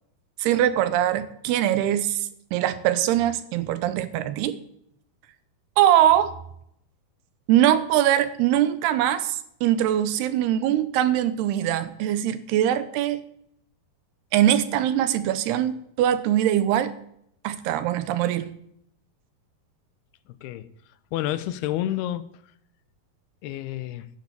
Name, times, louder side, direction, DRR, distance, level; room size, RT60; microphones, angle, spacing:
voice 1, 0.4-4.6 5.8-6.3 7.5-13.2 14.3-16.9 17.4-18.5, right 11 dB, 85° right, 3.0 m, -22 dB
voice 2, 20.3-20.7 21.1-22.3 23.4-24.1, left 13 dB, 85° left, 2.8 m, -29 dB
12.5 x 10.5 x 8.3 m
omnidirectional pair, 4.5 m